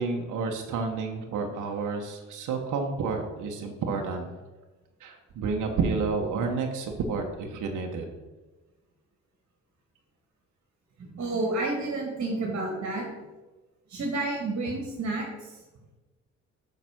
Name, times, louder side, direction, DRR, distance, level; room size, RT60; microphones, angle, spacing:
voice 1, 0.0-4.3 5.0-8.1, right 4 dB, 80° right, 3 dB, 1.2 m, -30 dB
voice 2, 11.0-13.0 13.9-15.3, right 2 dB, 50° right, 0 dB, 2.3 m, -30 dB
6.7 x 5.9 x 6.0 m, 1.2 s
cardioid pair, 90°, 30 cm